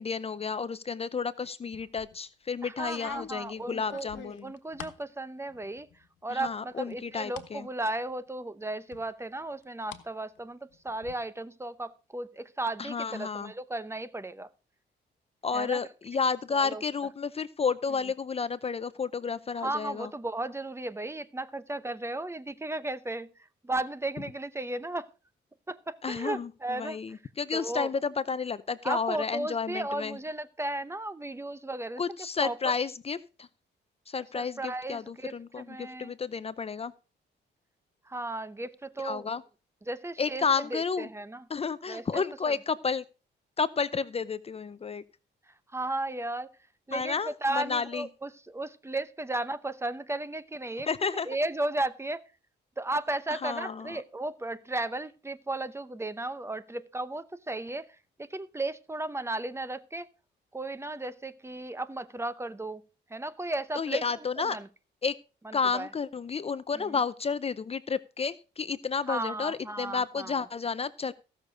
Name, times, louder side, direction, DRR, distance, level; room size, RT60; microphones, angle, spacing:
voice 1, 0.0-4.5 6.3-7.7 12.8-13.5 15.4-20.1 26.0-30.2 32.0-33.5 34.1-36.9 39.0-39.4 40.2-41.1 41.5-43.0 43.6-45.0 46.9-48.1 50.8-51.3 53.3-54.0 63.8-64.6 65.0-65.1 65.5-71.1, left 5 dB, 30° left, 0.6 m, -31 dB
sound 1, 1.7-2.2 2.8-5.1 5.5-6.1 6.4-7.5 8.0-8.1 8.9-10.1 10.4-11.1, left 10 dB, 85° left, 1.3 m, -47 dB
voice 2, 2.6-5.9 6.2-14.5 15.5-15.8 16.5-16.8 19.6-25.1 25.7-27.2 27.5-27.9 28.8-32.0 32.4-32.6 34.3-36.1 38.1-39.3 39.9-40.4 40.7-41.4 41.9-42.5 45.7-46.5 46.9-50.9 51.3-52.2 52.8-57.9 58.2-60.1 60.5-62.8 63.1-64.0 64.4-64.7 65.4-65.9 66.7-67.0 69.1-70.4, right 2 dB, 15° right, 0.8 m, -35 dB
15.5 x 6.6 x 5.0 m
cardioid pair, 105°, 19 cm